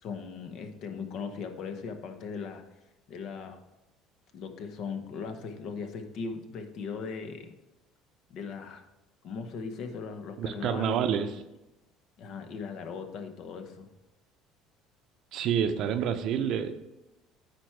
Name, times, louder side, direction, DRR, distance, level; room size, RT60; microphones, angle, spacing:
voice 1, 0.0-2.6 3.1-3.6 4.3-7.5 8.3-8.8 9.2-11.0 12.2-13.9, left 5 dB, 60° left, 7 dB, 1.0 m, -38 dB
voice 2, 10.4-11.3 15.3-16.7, right 8 dB, 60° right, 8 dB, 0.6 m, -28 dB
9.3 x 4.5 x 4.6 m, 0.97 s
cardioid pair, 115°, 0 cm